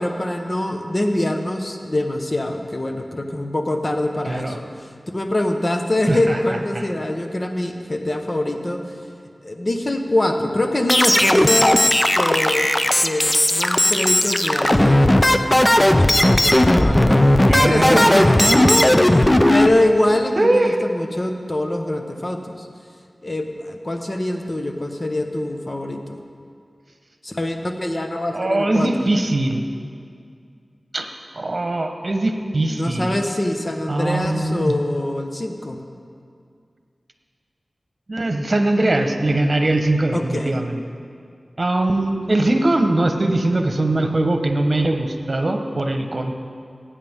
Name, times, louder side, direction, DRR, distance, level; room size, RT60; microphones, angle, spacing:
voice 1, 0.0-9.0 9.4-11.9 12.1-17.2 17.5-22.7 23.2-26.2 27.2-29.1 32.7-35.8 40.1-40.5, left 1 dB, 40° left, 4 dB, 1.2 m, -24 dB
voice 2, 6.1-6.4 6.7-6.9 17.5-18.9 20.4-20.8 28.3-29.6 30.9-31.1 31.3-33.2 33.9-34.7 38.1-40.8 41.6-46.3, right 2 dB, 55° right, 5 dB, 1.1 m, -21 dB
sound 1, 10.9-19.7, left 1 dB, 25° left, 0.6 m, -16 dB
19.0 x 8.7 x 3.7 m, 2.3 s
cardioid pair, 45°, 0 cm